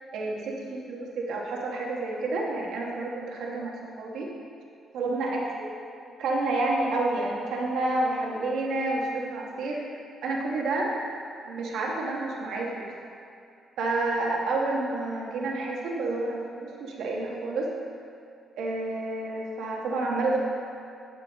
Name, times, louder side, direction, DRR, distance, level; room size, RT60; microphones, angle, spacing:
voice 1, 0.1-4.3 4.9-5.7 6.2-10.9 11.4-12.9 13.8-17.7 18.6-20.4, right 2 dB, 80° right, -2 dB, 1.5 m, -29 dB
13.0 x 5.8 x 3.6 m, 2.5 s
cardioid pair, 90°, 0 cm